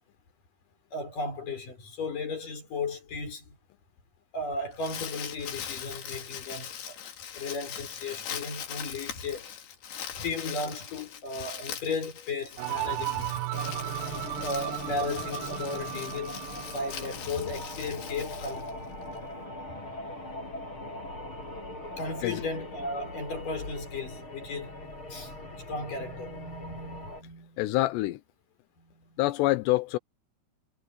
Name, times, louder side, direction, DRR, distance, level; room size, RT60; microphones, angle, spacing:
voice 1, 0.9-3.6 4.3-7.0 7.4-9.5 10.2-13.4 14.3-16.4 16.7-18.8 22.0-27.6 28.8-29.2, left 3 dB, 50° left, 7.7 m, -35 dB
Crumpling crinkling, 4.5-19.1, left 9 dB, 70° left, 4.3 m, -41 dB
sound 1, 12.6-17.2, right 16 dB, 80° right, 2.1 m, -35 dB
sound 2, 13.5-27.2, left 1 dB, 30° left, 7.4 m, -41 dB
voice 2, 27.6-28.2 29.2-30.0, left 18 dB, 85° left, 2.9 m, -26 dB
omnidirectional pair, 4.9 m